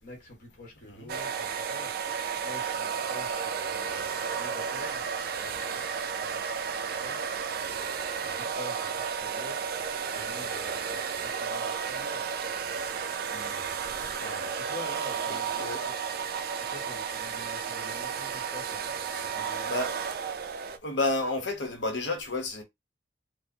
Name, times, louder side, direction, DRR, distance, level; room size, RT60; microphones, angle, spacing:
voice 1, 0.0-2.1 2.4-6.4 6.7-7.4 8.2-9.7 10.1-12.3 14.3-15.6 15.8-16.0 16.7-19.7, left 1 dB, 45° left, 1.3 m, -47 dB
sound 1, 1.1-20.8, right 6 dB, 55° right, 0.4 m, -33 dB
voice 2, 13.3-13.7 14.0-14.5 15.3-15.8 19.1-19.2 19.7-20.0 20.8-22.6, left 2 dB, 65° left, 0.9 m, -32 dB
4.6 x 2.0 x 2.7 m
head